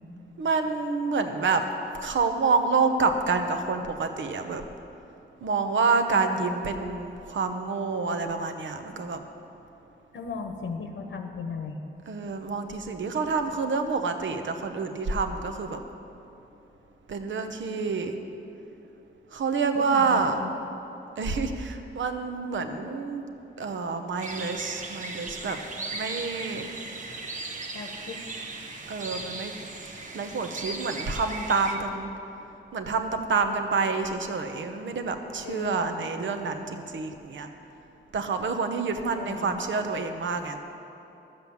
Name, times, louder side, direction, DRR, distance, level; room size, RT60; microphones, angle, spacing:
voice 1, 0.4-1.6 2.0-4.6 5.4-9.2 12.1-15.8 17.1-18.2 19.3-20.4 21.2-23.2 23.6-25.6 25.9-26.7 28.9-29.5 30.1-32.1 32.7-37.5 38.1-40.6, right 4 dB, 75° right, 7 dB, 0.9 m, -28 dB
voice 2, 10.1-11.8 19.7-20.6 22.6-22.7 27.7-28.2 35.4-36.0 39.1-39.6, left 5 dB, 80° left, 4 dB, 0.9 m, -37 dB
sound 1, 24.2-31.8, right 2 dB, 40° right, 1.0 m, -37 dB
12.5 x 7.8 x 7.1 m, 2.9 s
wide cardioid pair, 150°, 20 cm